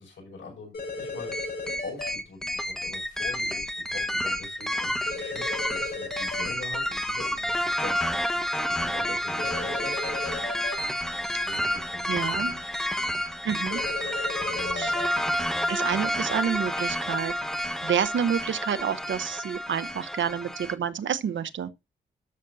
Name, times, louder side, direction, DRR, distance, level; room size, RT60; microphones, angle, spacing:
voice 1, 0.0-1.5 1.8-9.9 11.1-13.2 14.1-15.7, left 3 dB, 90° left, 5.8 m, -44 dB
sound 1, 0.7-2.1 5.1-6.4 9.4-10.7 13.7-15.1, left 3 dB, 55° left, 6.0 m, -35 dB
sound 2, 1.3-20.7, equal, 5° left, 1.3 m, -30 dB
voice 2, 12.1-12.5 13.4-13.8 14.7-14.9 15.7-17.3 17.8-21.7, right 8 dB, 85° right, 0.8 m, -28 dB
13.0 x 6.9 x 2.6 m
cardioid pair, 70°, 19 cm